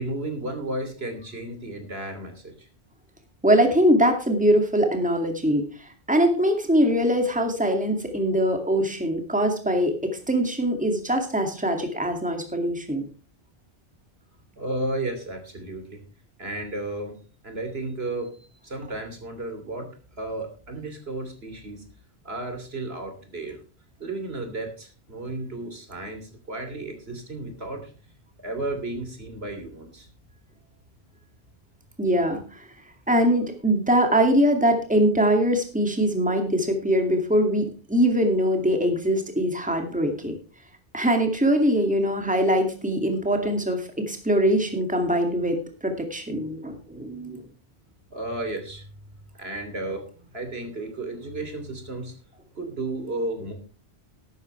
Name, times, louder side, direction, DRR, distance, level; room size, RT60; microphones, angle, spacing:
voice 1, 0.0-2.7 14.6-16.0 16.4-17.2 17.4-19.9 20.2-21.8 22.2-23.6 24.0-27.9 28.4-30.1 48.1-48.9 49.3-52.1 52.6-53.5, right 2 dB, 75° right, 5 dB, 3.3 m, -33 dB
voice 2, 3.4-13.1 32.0-32.7 33.1-40.3 40.9-47.4, equal, 5° right, 4 dB, 2.3 m, -22 dB
14.0 x 12.0 x 3.3 m, 0.36 s
omnidirectional pair, 1.0 m